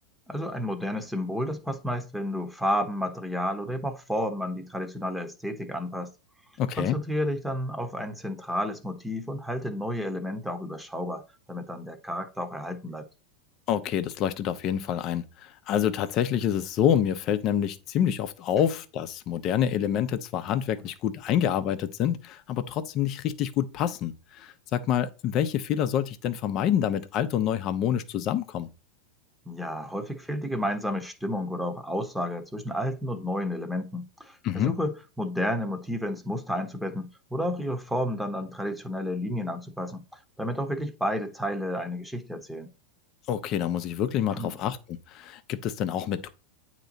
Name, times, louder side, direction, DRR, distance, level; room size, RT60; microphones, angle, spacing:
voice 1, 0.3-6.1 6.8-13.1 29.5-40.0 40.4-42.7 44.3-44.6, equal, ahead, 1.1 m, -31 dB
voice 2, 6.6-7.0 13.7-28.7 34.4-34.7 43.3-44.8 45.1-46.3, left 10 dB, 45° left, 0.8 m, -27 dB
9.0 x 3.0 x 4.0 m
hypercardioid pair, 100°, 0 cm